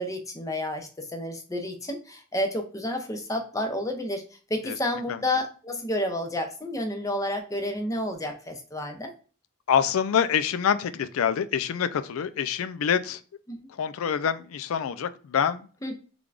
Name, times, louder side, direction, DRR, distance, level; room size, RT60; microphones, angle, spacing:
voice 1, 0.0-4.2 4.5-9.1 13.5-13.6 15.8-15.9, left 1 dB, 15° left, 0.6 m, -30 dB
voice 2, 9.7-13.2 13.7-15.7, left 8 dB, 85° left, 0.4 m, -26 dB
3.6 x 3.3 x 2.4 m
head